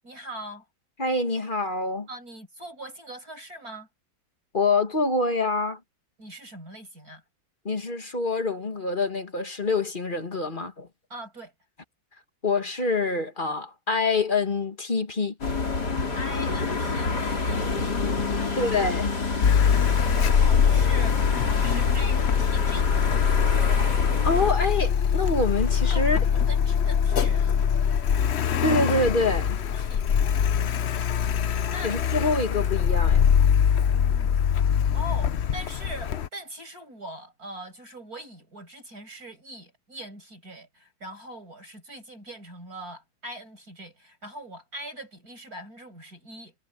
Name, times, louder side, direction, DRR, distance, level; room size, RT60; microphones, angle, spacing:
voice 1, 0.0-0.6 2.1-3.9 6.2-7.2 11.1-11.5 16.1-17.8 18.4-18.7 20.0-22.9 25.9-27.6 29.6-30.1 31.7-32.0 33.9-34.4 34.9-46.6, right 1 dB, 45° right, 8.0 m, -41 dB
voice 2, 1.0-2.1 4.5-5.8 7.7-10.9 12.4-15.3 18.6-19.1 24.2-26.2 28.6-29.6 31.8-33.3, left 3 dB, 25° left, 1.8 m, -26 dB
sound 1, 15.4-24.5, left 3 dB, 55° left, 4.2 m, -28 dB
Car, 19.4-36.3, left 8 dB, 75° left, 0.6 m, -23 dB
omnidirectional pair, 2.1 m